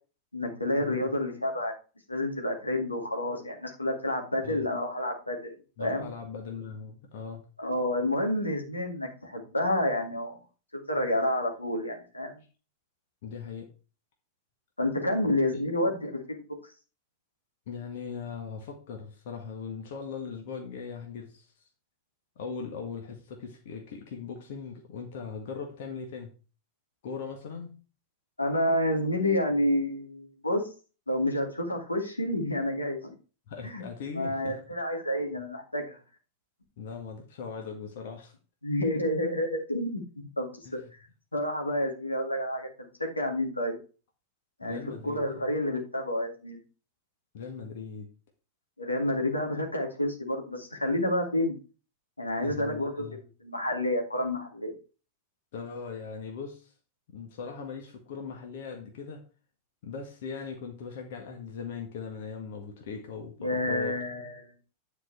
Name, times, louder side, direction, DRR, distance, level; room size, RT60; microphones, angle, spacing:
voice 1, 0.3-1.7 2.1-5.5 5.8-6.1 7.6-10.4 10.7-12.4 14.8-16.4 28.4-30.6 31.1-33.1 33.6-33.8 34.1-36.0 38.6-40.8 41.3-43.8 44.6-44.8 45.0-46.6 48.8-51.6 52.2-53.0 53.4-54.7 63.4-64.5, left 1 dB, 85° left, 2 dB, 2.2 m, -29 dB
voice 2, 5.8-7.4 9.8-10.0 11.0-11.1 13.2-13.7 17.7-21.5 22.4-26.3 27.0-27.8 33.5-34.6 36.8-38.3 40.7-40.9 44.6-45.4 47.3-48.1 52.4-53.2 55.5-56.7 57.1-59.3 59.8-64.0, left 5 dB, 55° left, 3 dB, 1.7 m, -39 dB
10.0 x 4.8 x 4.7 m, 0.34 s
figure-of-eight pair, 90°, 0 cm